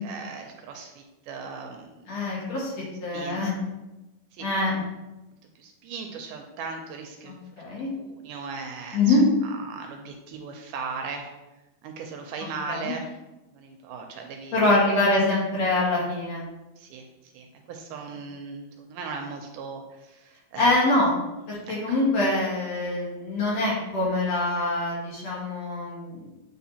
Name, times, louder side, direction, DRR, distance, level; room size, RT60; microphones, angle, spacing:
voice 1, 0.0-2.2 3.1-3.4 4.4-4.5 5.6-7.4 7.8-9.2 9.6-11.3 11.8-13.1 13.5-14.7 16.8-17.0 17.3-20.7 21.7-22.0, right 5 dB, 80° right, 3 dB, 2.0 m, -38 dB
voice 2, 2.1-2.7 3.0-3.5 4.4-4.8 7.2-7.9 8.9-9.2 12.7-13.0 14.5-16.4 20.5-21.1 21.5-26.3, left 2 dB, 55° left, -6 dB, 2.4 m, -24 dB
8.3 x 4.3 x 2.8 m, 1.0 s
omnidirectional pair, 3.9 m